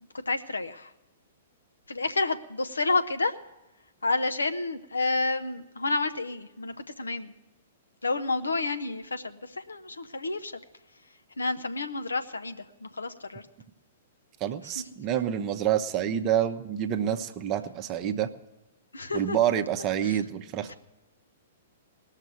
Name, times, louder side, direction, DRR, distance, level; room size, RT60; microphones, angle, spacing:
voice 1, 0.3-0.9 1.9-3.3 4.0-7.3 8.0-10.5 11.4-13.4 18.9-19.4 20.0-20.2 20.7-20.8, left 3 dB, 75° left, 8 dB, 0.9 m, -30 dB
voice 2, 14.4-18.3 19.1-20.7, right 10 dB, 30° right, 7 dB, 0.8 m, -27 dB
19.5 x 6.6 x 7.8 m, 1.0 s
figure-of-eight pair, 110°, 0 cm